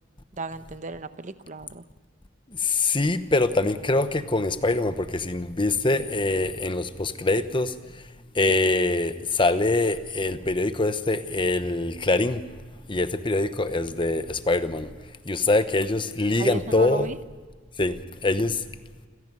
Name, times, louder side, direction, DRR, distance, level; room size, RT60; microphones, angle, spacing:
voice 1, 0.4-1.8 16.4-17.2, right 2 dB, 40° right, 11 dB, 0.9 m, -34 dB
voice 2, 2.6-7.7 8.4-12.4 12.9-14.9 15.3-17.1 17.8-17.9 18.2-18.6, left 2 dB, 25° left, 11 dB, 1.0 m, -24 dB
28.5 x 16.0 x 6.3 m, 1.5 s
head